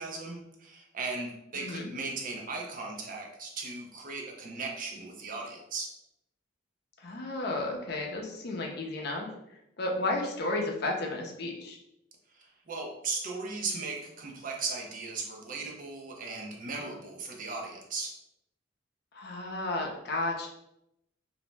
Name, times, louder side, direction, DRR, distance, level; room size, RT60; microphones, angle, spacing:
voice 1, 0.0-5.9 12.4-18.1, right 3 dB, 45° right, 1 dB, 0.5 m, -37 dB
voice 2, 1.5-1.9 7.0-9.3 9.8-11.8 19.1-20.5, left 2 dB, 60° left, 1 dB, 0.5 m, -33 dB
2.6 x 2.0 x 3.2 m, 0.82 s
head